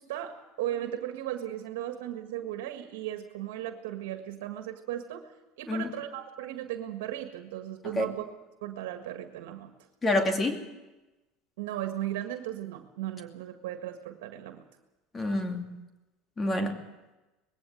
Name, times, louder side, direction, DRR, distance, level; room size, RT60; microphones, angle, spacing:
voice 1, 0.0-5.3 5.6-8.2 8.6-9.7 11.6-14.6 16.6-16.8, right 12 dB, 85° right, 6 dB, 1.7 m, -36 dB
voice 2, 10.0-10.6 15.1-15.8 16.4-16.8, left 2 dB, 25° left, 5 dB, 2.5 m, -28 dB
20.0 x 16.5 x 7.9 m, 1.1 s
supercardioid pair, 110°, 0 cm